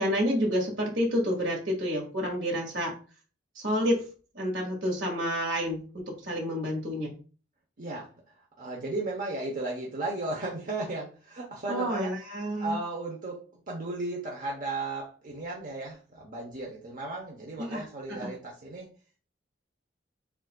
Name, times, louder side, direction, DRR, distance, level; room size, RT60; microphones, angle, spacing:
voice 1, 0.0-2.9 3.6-4.0 4.3-7.1 11.7-12.8 17.6-18.3, equal, 75° right, 0 dB, 1.9 m, -29 dB
voice 2, 7.8-8.1 8.6-12.1 12.6-18.9, right 2 dB, 50° right, -2 dB, 0.9 m, -35 dB
7.0 x 2.5 x 2.2 m, 0.36 s
head